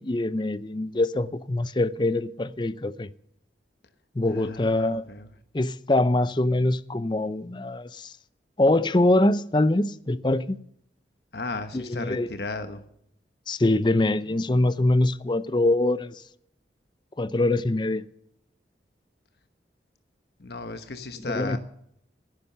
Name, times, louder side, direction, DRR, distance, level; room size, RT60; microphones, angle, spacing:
voice 1, 0.0-3.1 4.2-5.0 5.5-8.1 8.6-10.6 11.7-12.3 13.5-16.2 17.2-18.0 21.3-21.6, left 2 dB, 25° left, 0.5 m, -24 dB
voice 2, 4.3-5.3 11.3-12.8 20.4-21.6, left 3 dB, 65° left, 1.2 m, -35 dB
15.5 x 11.5 x 6.8 m
head